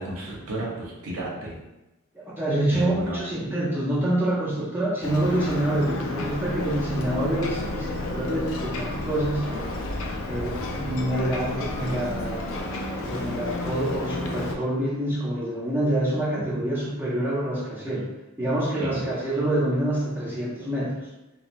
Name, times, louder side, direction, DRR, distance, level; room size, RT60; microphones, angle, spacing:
voice 1, 0.0-1.5 2.7-3.2 18.7-19.1, right 1 dB, 85° right, -3 dB, 0.7 m, -32 dB
voice 2, 2.1-9.5 10.3-12.5 12.9-18.1 18.4-21.0, right 1 dB, 10° right, -7 dB, 0.6 m, -26 dB
Ocean, 5.0-14.5, left 2 dB, 65° left, 0.4 m, -32 dB
sound 1, 6.3-12.6, equal, 60° right, 1.1 m, -39 dB
3.0 x 2.1 x 2.5 m, 0.99 s
head